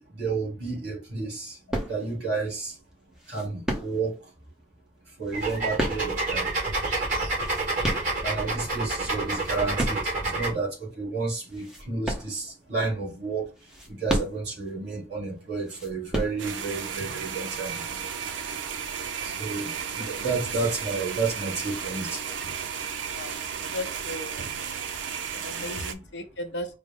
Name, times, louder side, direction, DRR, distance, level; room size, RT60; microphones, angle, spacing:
voice 1, 0.1-1.6 1.9-2.7 3.3-4.1 5.2-6.5 8.2-13.5 13.9-18.0 19.2-22.2, right 4 dB, 60° right, 2.5 m, -31 dB
sound 1, 1.7-2.3 3.2-4.3 5.2-6.4 7.2-8.6 9.1-10.2 10.7-10.8 11.5-12.8 13.5-14.7 15.6-16.8 17.5-17.9, equal, 5° right, 0.7 m, -32 dB
sound 2, 5.3-10.5, right 2 dB, 45° right, 2.2 m, -28 dB
sound 3, 16.4-25.9, right 7 dB, 85° right, 0.5 m, -34 dB
voice 2, 23.6-24.4 25.3-26.7, left 1 dB, 70° left, 0.7 m, -36 dB
4.9 x 2.1 x 3.5 m
head